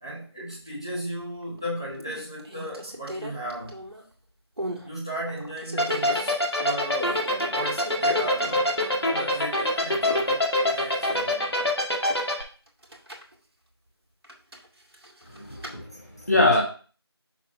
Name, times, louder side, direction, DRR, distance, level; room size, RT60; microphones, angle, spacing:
voice 1, 0.0-3.8 4.8-11.5, equal, 10° left, 1.2 m, -35 dB
sound 1, 1.2-1.6 2.0-4.1 4.6-4.9 5.3-6.3 7.0-8.8 9.1-9.2 12.7-13.3 14.2-15.8, right 1 dB, 65° right, 2.0 m, -39 dB
sound 2, 5.8-12.4, left 1 dB, 65° left, 2.1 m, -23 dB
voice 2, 15.3-16.6, left 2 dB, 40° left, 1.8 m, -23 dB
6.0 x 4.2 x 5.5 m
figure-of-eight pair, 180°, 14 cm